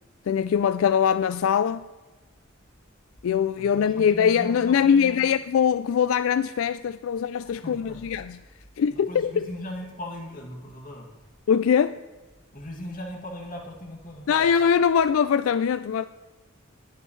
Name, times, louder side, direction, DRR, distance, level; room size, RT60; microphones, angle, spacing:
voice 1, 0.3-1.9 3.2-8.4 8.8-9.5 11.5-12.0 14.3-16.0, left 7 dB, 75° left, 0.3 m, -22 dB
voice 2, 3.5-5.2 7.6-8.0 8.9-11.3 12.5-14.4, left 1 dB, 40° left, 2.4 m, -39 dB
19.5 x 8.6 x 3.2 m
head